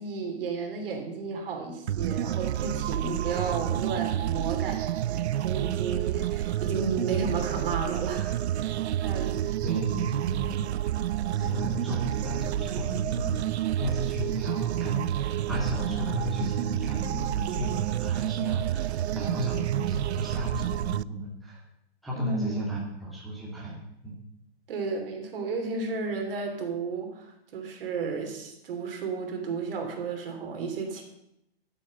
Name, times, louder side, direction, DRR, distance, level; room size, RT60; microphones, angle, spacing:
voice 1, 0.0-9.5 22.1-22.6 24.7-31.0, right 4 dB, 60° right, 3 dB, 3.3 m, -33 dB
sound 1, 1.9-21.0, right 12 dB, 85° right, 0.5 m, -29 dB
voice 2, 9.6-10.6 11.3-21.6 22.0-24.2, equal, ahead, -6 dB, 2.4 m, -35 dB
11.5 x 8.8 x 6.7 m, 0.80 s
hypercardioid pair, 155°, 32 cm